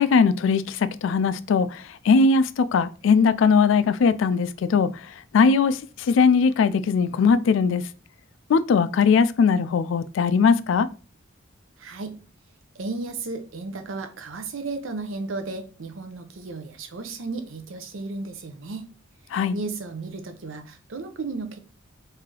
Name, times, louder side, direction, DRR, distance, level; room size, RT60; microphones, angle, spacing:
voice 1, 0.0-4.9 5.3-5.8 6.1-7.8 8.5-10.9 19.3-19.5, left 5 dB, 75° left, 0.3 m, -20 dB
voice 2, 11.8-12.2 12.7-18.9 19.5-21.6, right 3 dB, 80° right, 0.6 m, -34 dB
3.3 x 2.7 x 3.7 m
head